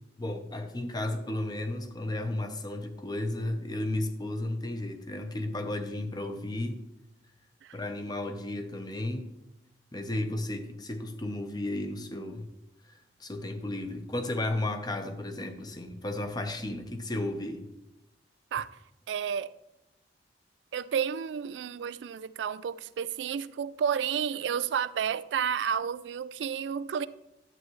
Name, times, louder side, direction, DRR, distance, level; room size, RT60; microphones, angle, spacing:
voice 1, 0.2-6.8 7.7-9.3 9.9-12.5 12.9-17.7, left 1 dB, 25° left, 0.8 m, -33 dB
voice 2, 19.1-19.5 20.7-27.1, right 7 dB, 85° right, 0.3 m, -31 dB
11.0 x 8.2 x 3.1 m
head